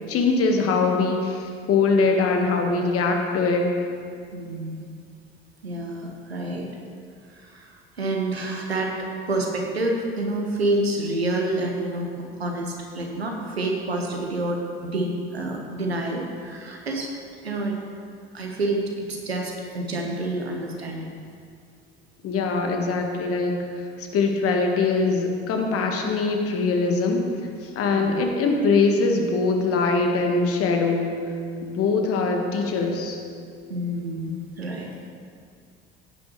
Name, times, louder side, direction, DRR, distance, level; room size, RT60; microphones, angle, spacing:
voice 1, 0.1-3.7 22.2-27.2 27.6-31.2 31.6-33.2, left 4 dB, 50° left, 3 dB, 1.6 m, -22 dB
voice 2, 4.3-4.9 5.6-6.7 7.3-8.9 9.3-12.1 12.4-17.1 17.4-17.8 18.3-21.1 27.9-28.1 33.7-35.1, right 2 dB, 85° right, 1 dB, 1.3 m, -28 dB
15.5 x 9.6 x 3.2 m, 2.3 s
figure-of-eight pair, 60°, 30 cm